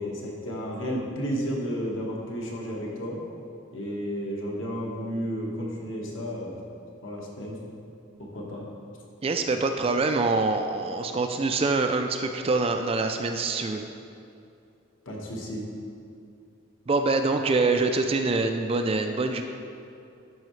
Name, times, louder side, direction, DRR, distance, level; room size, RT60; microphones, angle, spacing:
voice 1, 0.0-3.2 3.7-6.6 7.0-7.6 8.2-8.7 15.0-15.7, equal, 65° left, -2 dB, 1.3 m, -32 dB
voice 2, 9.2-13.8 16.9-19.4, right 3 dB, 30° right, 6 dB, 0.3 m, -25 dB
12.5 x 5.5 x 3.2 m, 2.5 s
head